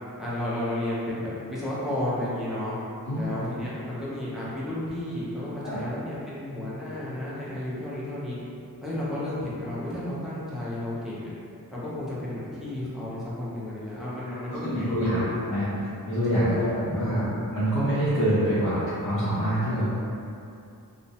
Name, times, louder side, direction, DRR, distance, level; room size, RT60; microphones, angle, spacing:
voice 1, 0.2-2.7 3.1-8.4 8.8-11.3 11.7-15.8 16.3-17.2, left 1 dB, ahead, -10 dB, 0.5 m, -32 dB
voice 2, 14.5-15.7 16.0-17.2 17.5-19.9, equal, 60° left, -13 dB, 0.7 m, -25 dB
2.4 x 2.0 x 2.7 m, 2.6 s
wide cardioid pair, 135°, 36 cm